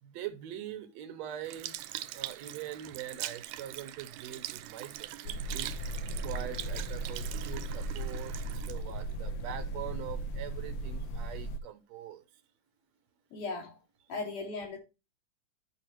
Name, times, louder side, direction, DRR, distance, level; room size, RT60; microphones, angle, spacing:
voice 1, 0.0-1.8 2.1-5.8 6.2-12.3, right 10 dB, 70° right, 2.1 m, -43 dB
Sink (filling or washing) / Liquid, 1.4-10.0 10.7-10.8, right 14 dB, 90° right, 2.1 m, -42 dB
sound 1, 5.3-11.6, right 2 dB, 70° left, 1.6 m, -37 dB
voice 2, 13.3-13.8 14.1-14.8, left 3 dB, 85° left, 5.0 m, -37 dB
12.5 x 5.5 x 3.0 m
omnidirectional pair, 3.5 m